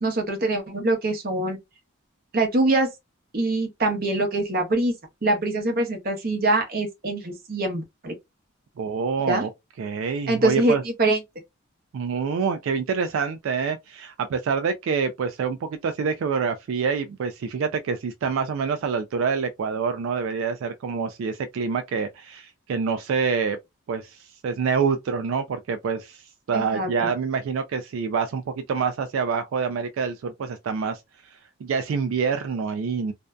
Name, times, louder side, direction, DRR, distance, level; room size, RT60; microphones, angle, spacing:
voice 1, 0.0-1.6 2.3-2.9 3.3-4.9 5.2-8.1 9.3-9.4 10.3-11.2 26.5-27.1, right 2 dB, 45° right, 0.7 m, -24 dB
voice 2, 8.8-9.5 9.8-10.8 11.9-23.6 23.9-33.1, right 5 dB, 70° right, 0.3 m, -26 dB
2.5 x 2.1 x 2.2 m
head